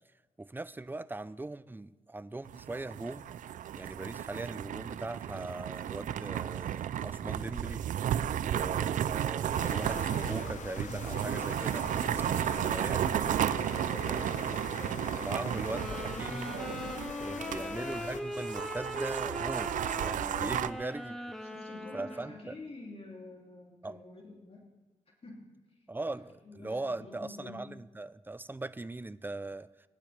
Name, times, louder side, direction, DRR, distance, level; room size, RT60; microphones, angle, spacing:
voice 1, 0.4-3.3 3.7-7.8 8.4-11.9 12.6-13.2 14.0-14.6 15.1-16.5 17.2-21.2 21.9-22.6 23.8-24.0 25.9-29.7, right 2 dB, 15° right, 16 dB, 0.5 m, -40 dB
sound 1, 2.4-17.6 17.9-18.0 18.3-20.7, right 10 dB, 80° right, 0.4 m, -33 dB
sound 2, 9.5-18.2, left 6 dB, 70° left, 1.0 m, -43 dB
voice 2, 12.1-14.5 14.7-15.6 17.3-17.6 21.4-24.6 25.2-25.4 25.7-25.8 26.4-27.7, left 2 dB, 50° left, -2 dB, 2.9 m, -48 dB
Wind instrument woodwind instrument, 15.7-22.5, left 1 dB, 5° left, 1.4 m, -40 dB
21.5 x 11.5 x 3.4 m, 1.3 s
cardioid pair, 55°, 13 cm